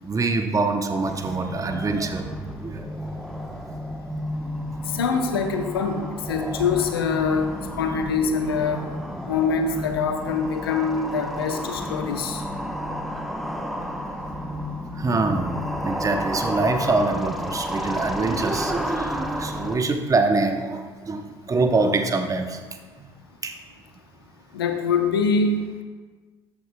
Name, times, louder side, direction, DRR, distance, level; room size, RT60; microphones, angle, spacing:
voice 1, 0.0-2.3 2.6-2.8 12.0-12.1 12.6-13.3 14.9-22.6 23.0-23.1 23.4-23.6, right 3 dB, 25° right, 5 dB, 0.9 m, -25 dB
sound 1, 1.1-19.8, equal, ahead, 0.9 m, -32 dB
voice 2, 4.9-7.5 7.8-8.9 9.3-12.4 24.5-25.8, left 5 dB, 85° left, 6 dB, 0.8 m, -24 dB
13.0 x 8.6 x 2.2 m, 1.4 s
figure-of-eight pair, 50°, 12 cm